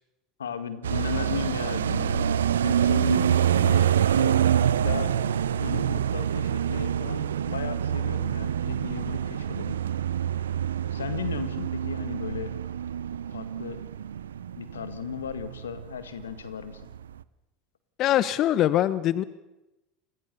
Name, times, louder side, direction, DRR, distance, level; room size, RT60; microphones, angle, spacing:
voice 1, 0.4-5.1 5.5-9.8 10.9-12.6 13.3-13.8 14.6-16.8, left 7 dB, 90° left, 12 dB, 1.9 m, -36 dB
sound 1, 0.8-15.9 16.2-16.3 16.6-17.2, right 9 dB, 85° right, 0.7 m, -26 dB
voice 2, 18.0-19.2, left 12 dB, 50° left, 16 dB, 0.9 m, -23 dB
27.0 x 21.0 x 6.9 m, 0.99 s
hypercardioid pair, 80°, 0 cm